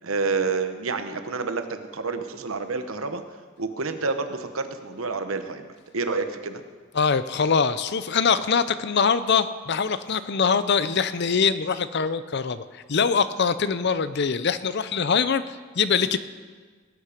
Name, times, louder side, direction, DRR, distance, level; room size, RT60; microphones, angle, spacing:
voice 1, 0.0-3.2 3.6-5.7 5.9-6.6, right 4 dB, 75° right, 8 dB, 1.1 m, -28 dB
voice 2, 6.9-16.2, left 5 dB, 55° left, 14 dB, 0.6 m, -23 dB
18.5 x 9.6 x 5.1 m, 1.5 s
head